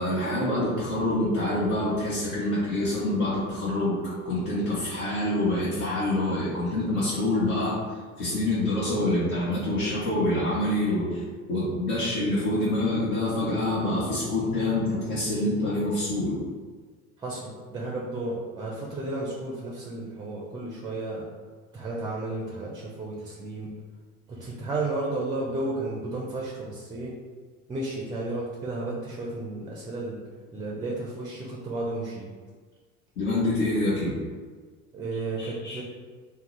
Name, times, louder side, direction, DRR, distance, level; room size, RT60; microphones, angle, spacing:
voice 1, 0.0-4.0 4.2-7.8 8.2-11.2 11.5-16.4 33.2-34.2 35.4-35.8, left 1 dB, 65° left, -8 dB, 1.1 m, -26 dB
voice 2, 17.2-21.2 21.7-23.7 24.3-27.1 27.7-30.2 30.5-32.3 34.9-35.8, right 2 dB, 10° right, -3 dB, 0.4 m, -33 dB
2.8 x 2.1 x 3.8 m, 1.5 s
hypercardioid pair, 75°, 43 cm